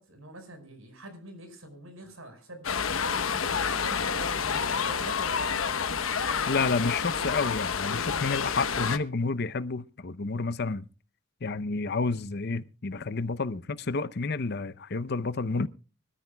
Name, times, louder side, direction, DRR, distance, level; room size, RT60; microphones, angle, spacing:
voice 1, 0.0-6.0 7.1-7.4, right 1 dB, 80° right, 5.1 m, -45 dB
sound 1, 2.6-9.0, left 6 dB, 75° left, 1.0 m, -29 dB
voice 2, 6.5-10.8 11.4-15.7, left 4 dB, 50° left, 0.7 m, -30 dB
24.5 x 13.5 x 2.3 m
head